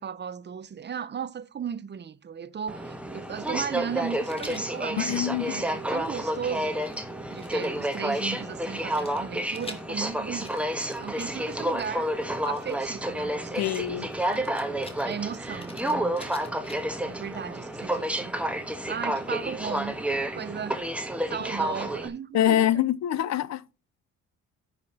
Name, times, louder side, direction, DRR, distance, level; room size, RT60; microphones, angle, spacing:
voice 1, 0.0-6.8 7.3-10.5 11.0-12.1 12.4-14.5 15.0-16.2 17.0-18.4 18.9-20.0 20.4-22.8, right 7 dB, 35° right, 0.6 m, -36 dB
Aircraft, 2.7-22.1, right 1 dB, 5° right, 1.3 m, -30 dB
Rattle, 4.2-4.7 5.4-8.0 8.9-13.0 13.6-17.1, left 2 dB, 20° left, 1.7 m, -49 dB
voice 2, 5.0-5.6 13.6-14.1 22.3-23.6, left 11 dB, 60° left, 0.6 m, -25 dB
9.6 x 5.7 x 4.2 m
cardioid pair, 90°, 30 cm